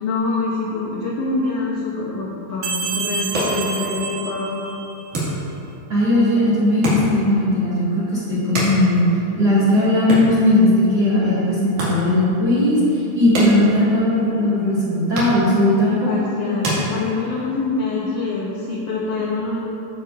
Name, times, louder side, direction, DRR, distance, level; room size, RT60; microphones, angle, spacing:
voice 1, 0.0-4.6 15.9-19.6, left 3 dB, 75° left, -3 dB, 1.5 m, -25 dB
sound 1, 2.6-5.2, right 5 dB, 90° right, 2.8 m, -28 dB
sound 2, 3.1-17.6, right 1 dB, 60° right, 3.5 m, -30 dB
voice 2, 5.9-9.1 9.4-16.1, left 1 dB, 35° right, -9 dB, 2.1 m, -18 dB
15.0 x 8.0 x 2.6 m, 2.9 s
omnidirectional pair, 4.0 m